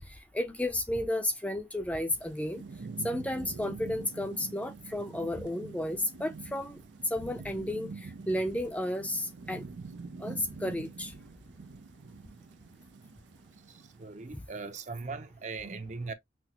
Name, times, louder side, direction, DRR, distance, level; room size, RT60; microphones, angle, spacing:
voice 1, 0.1-2.6 3.0-9.6 10.2-11.1, left 1 dB, 10° left, 0.5 m, -33 dB
Thunderstorm / Rain, 2.1-14.4, right 4 dB, 80° right, 0.5 m, -46 dB
voice 2, 14.0-16.1, right 4 dB, 40° right, 0.7 m, -39 dB
5.9 x 2.1 x 2.9 m
head